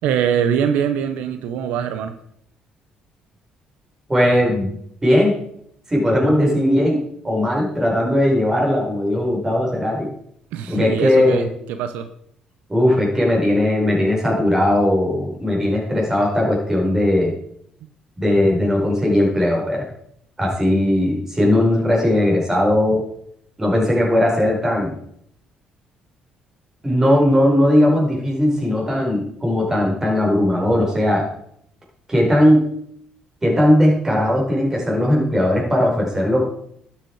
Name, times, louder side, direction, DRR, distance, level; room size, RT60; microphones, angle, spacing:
voice 1, 0.0-2.1 10.5-12.1, right 8 dB, 85° right, 9 dB, 0.8 m, -23 dB
voice 2, 4.1-4.7 5.0-5.3 5.9-7.0 7.2-10.1 10.7-11.5 12.7-17.3 18.2-19.9 20.4-23.1 23.6-24.9 26.8-31.3 32.1-32.6 33.4-36.5, left 1 dB, 20° right, -2 dB, 5.2 m, -18 dB
12.0 x 7.5 x 4.8 m, 0.69 s
cardioid pair, 95°, 2 cm